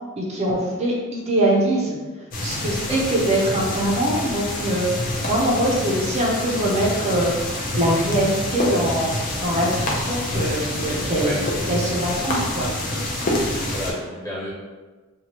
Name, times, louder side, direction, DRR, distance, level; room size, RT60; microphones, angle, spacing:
voice 1, 0.2-2.0 2.4-11.3 11.7-12.7, right 1 dB, 30° right, -3 dB, 0.6 m, -23 dB
sound 1, 2.3-13.9, left 1 dB, 40° left, 0.5 m, -27 dB
voice 2, 13.3-14.5, left 1 dB, 15° left, -10 dB, 1.2 m, -32 dB
3.0 x 2.3 x 2.8 m, 1.3 s
head